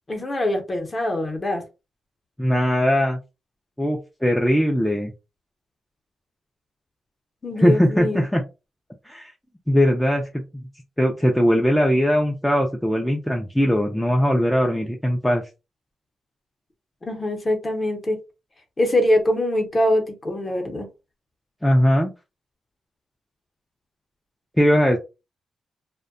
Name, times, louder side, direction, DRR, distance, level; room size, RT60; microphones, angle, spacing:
voice 1, 0.1-1.6 7.4-8.2 17.0-18.2 18.8-20.9, left 1 dB, 25° left, 0.7 m, -23 dB
voice 2, 2.4-3.2 3.8-5.1 7.6-8.4 9.0-9.3 9.7-10.2 11.0-15.4 21.6-22.1 24.6-25.0, equal, 5° left, 0.3 m, -20 dB
2.6 x 2.1 x 2.5 m
wide cardioid pair, 140°, 0 cm